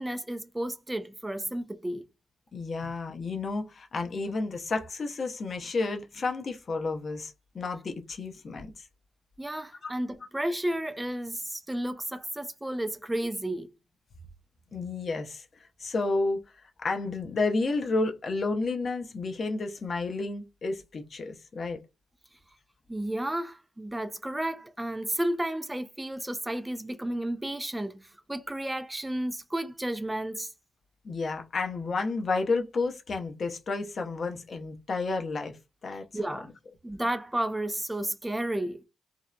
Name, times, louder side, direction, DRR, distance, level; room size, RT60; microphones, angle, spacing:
voice 1, 0.0-2.0 9.4-13.7 22.9-30.5 36.1-36.5 36.8-38.8, right 1 dB, 15° right, 0.5 m, -32 dB
voice 2, 2.5-8.9 9.8-9.9 14.7-21.8 31.0-36.0, left 3 dB, 55° left, 0.7 m, -31 dB
2.7 x 2.0 x 2.3 m
supercardioid pair, 55°, 0 cm